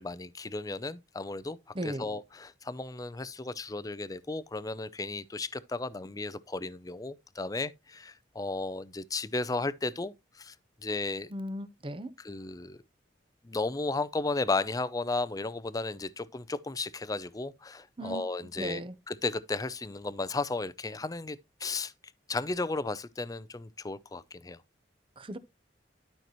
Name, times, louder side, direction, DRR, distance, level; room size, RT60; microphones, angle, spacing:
voice 1, 0.0-1.6 1.8-10.5 10.8-11.3 12.2-12.8 13.4-21.9 22.3-24.6, left 3 dB, 20° left, 0.5 m, -34 dB
voice 2, 1.7-2.1 11.3-12.1 18.0-18.2 18.6-18.9 25.2-25.4, right 1 dB, 30° right, 0.8 m, -36 dB
12.0 x 5.8 x 3.0 m
head